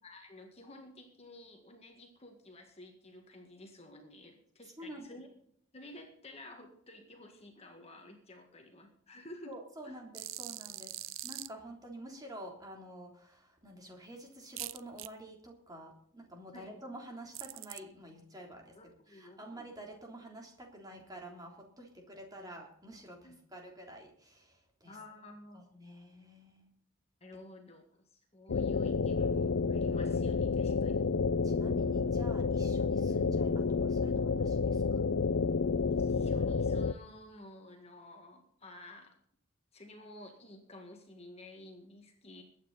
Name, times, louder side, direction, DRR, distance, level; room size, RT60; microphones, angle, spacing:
voice 1, 0.0-5.3 5.7-9.6 9.8-10.0 16.5-16.8 18.7-19.5 23.2-23.4 24.9-25.6 27.2-31.1 31.6-32.0 35.9-39.2 39.7-42.4, left 1 dB, 30° left, 3 dB, 1.9 m, -52 dB
voice 2, 4.8-5.2 9.5-18.8 19.1-25.0 25.5-26.7 31.4-35.1, right 1 dB, 20° right, 1 dB, 3.4 m, -49 dB
sound 1, 10.1-11.5 14.6-15.1 17.3-17.8, right 16 dB, 70° right, 0.6 m, -42 dB
sound 2, 28.5-36.9, left 4 dB, 65° left, 0.5 m, -30 dB
22.0 x 9.3 x 4.1 m, 0.67 s
head